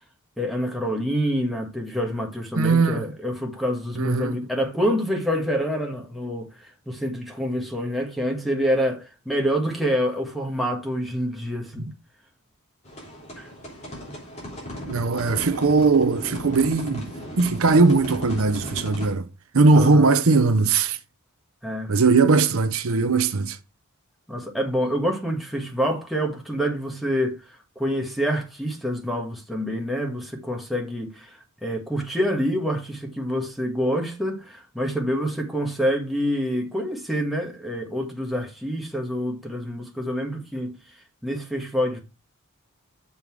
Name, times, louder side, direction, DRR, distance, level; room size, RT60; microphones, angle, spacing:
voice 1, 0.4-11.9 13.4-13.5 19.7-20.1 21.6-21.9 24.3-40.7 41.2-42.0, equal, ahead, 1.5 m, -27 dB
voice 2, 2.6-3.1 4.0-4.4 14.9-19.3 19.5-21.0 21.9-23.6, right 3 dB, 65° right, 0.7 m, -19 dB
sound 1, 12.8-19.1, equal, 30° left, 3.3 m, -36 dB
6.9 x 5.6 x 4.6 m
head